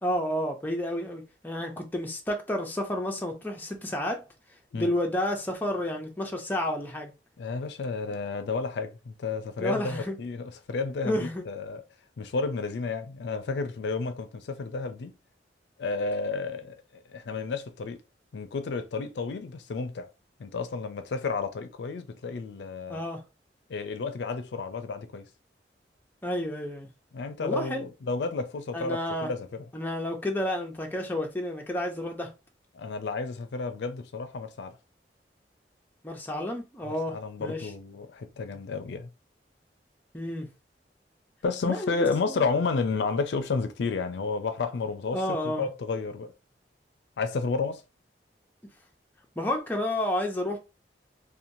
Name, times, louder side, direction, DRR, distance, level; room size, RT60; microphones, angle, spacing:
voice 1, 0.0-4.2 4.7-7.1 9.6-10.2 11.0-11.4 22.9-23.2 26.2-26.9 27.4-27.8 28.7-29.3 29.7-32.3 36.0-37.7 40.1-40.5 41.6-41.9 42.3-42.4 45.1-45.7 49.4-50.6, left 1 dB, 10° left, 0.5 m, -30 dB
voice 2, 7.4-11.8 12.2-15.1 15.8-18.0 18.3-20.1 20.4-23.0 23.7-25.3 27.1-29.7 32.7-34.8 36.9-39.1 41.4-46.3 47.2-47.8, left 4 dB, 75° left, 0.4 m, -31 dB
2.9 x 2.2 x 2.6 m
head